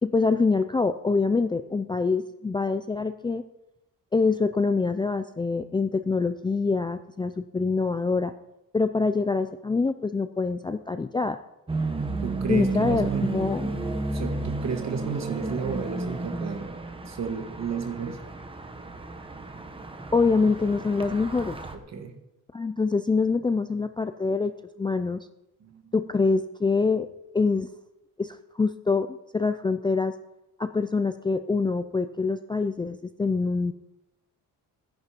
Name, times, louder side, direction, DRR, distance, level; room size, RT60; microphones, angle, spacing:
voice 1, 0.0-3.4 4.1-8.3 8.7-11.4 12.5-13.7 20.1-21.6 22.5-25.2 25.9-27.1 27.3-27.7 28.2-30.1 30.6-33.7, left 4 dB, 15° left, 10 dB, 0.4 m, -25 dB
sound 1, 11.7-21.8, right 3 dB, 15° right, 1.3 m, -32 dB
voice 2, 12.2-13.4 14.1-16.7 17.1-18.2 21.7-22.2 25.6-25.9, right 5 dB, 45° right, 5 dB, 2.2 m, -33 dB
16.0 x 10.5 x 5.2 m, 0.93 s
cardioid pair, 130°, 36 cm